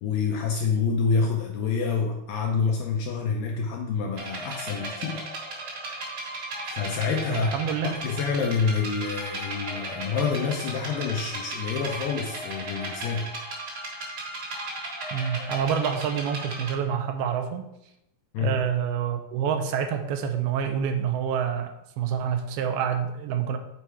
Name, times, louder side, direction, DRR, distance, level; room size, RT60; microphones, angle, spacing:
voice 1, 0.0-5.3 6.7-7.5 7.8-13.3 18.3-18.6, left 5 dB, 80° left, 2 dB, 2.1 m, -27 dB
sound 1, 4.2-16.7, right 2 dB, 50° right, 1.7 m, -36 dB
voice 2, 7.3-8.0 15.1-17.7 18.4-23.6, right 8 dB, 85° right, 6 dB, 2.4 m, -27 dB
6.9 x 4.3 x 4.7 m, 0.84 s
omnidirectional pair, 4.5 m